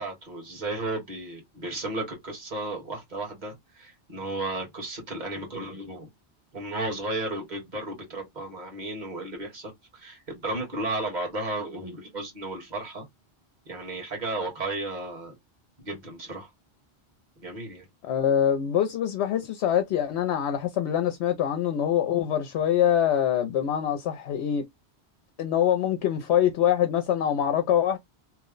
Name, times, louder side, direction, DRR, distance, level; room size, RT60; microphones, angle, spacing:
voice 1, 0.0-6.1 6.5-13.0 13.7-15.4 15.8-16.5 17.4-17.9, right 2 dB, 45° right, 1.4 m, -34 dB
voice 2, 18.0-24.6 25.4-28.0, left 10 dB, 90° left, 0.9 m, -24 dB
3.0 x 2.1 x 3.7 m
omnidirectional pair, 1.1 m